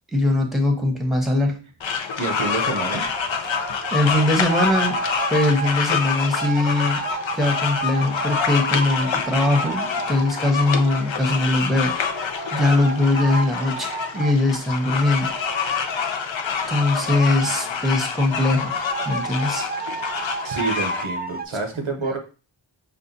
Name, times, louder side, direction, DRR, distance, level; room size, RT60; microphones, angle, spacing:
voice 1, 0.1-1.6 3.9-5.0 5.3-7.0 7.3-15.4 16.7-19.7 21.8-21.9, left 2 dB, ahead, 3 dB, 0.9 m, -21 dB
sound 1, 1.8-21.0, left 6 dB, 70° left, 0.6 m, -27 dB
voice 2, 2.2-3.0 17.0-17.1 17.6-18.1 20.4-22.2, right 3 dB, 90° right, 3 dB, 0.9 m, -28 dB
sound 2, 2.8-5.8 6.3-11.3 12.0-14.4 15.2-16.1 16.8-17.6 18.3-21.5, right 4 dB, 25° right, 0.3 m, -33 dB
5.5 x 2.3 x 2.6 m, 0.34 s
wide cardioid pair, 40°, 47 cm